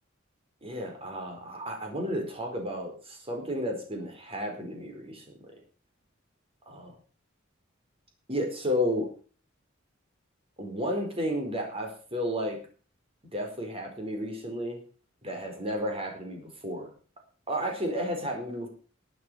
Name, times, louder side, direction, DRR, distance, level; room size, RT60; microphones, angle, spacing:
voice 1, 0.6-5.2 6.7-6.9 8.3-9.1 10.6-12.6 13.3-14.8 15.2-16.9 17.5-18.7, equal, 30° right, 3 dB, 4.5 m, -32 dB
12.0 x 8.7 x 6.8 m, 0.39 s
head